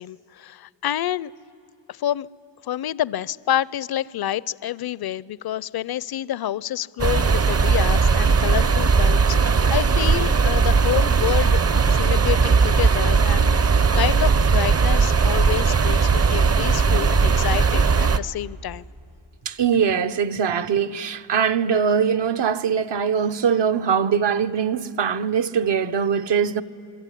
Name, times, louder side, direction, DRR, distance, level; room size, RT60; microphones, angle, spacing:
voice 1, 0.0-1.3 1.9-2.3 2.6-11.6 11.9-18.9, left 12 dB, 60° left, 0.5 m, -28 dB
sound 1, 7.0-18.2, right 5 dB, 35° right, 0.6 m, -18 dB
voice 2, 19.4-26.6, right 7 dB, 70° right, 1.0 m, -22 dB
27.0 x 22.5 x 9.9 m
wide cardioid pair, 105°, 44 cm